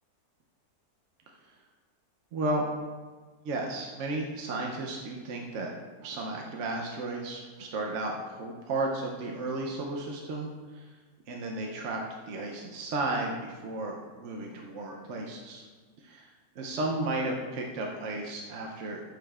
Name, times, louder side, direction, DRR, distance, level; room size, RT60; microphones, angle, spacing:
voice 1, 2.3-2.6 3.4-5.7 6.0-10.5 10.7-10.9 11.3-12.0 12.3-15.6 16.0-16.3 16.6-19.0, right 2 dB, 65° right, 0 dB, 0.8 m, -33 dB
9.0 x 5.0 x 2.3 m, 1.4 s
omnidirectional pair, 1.7 m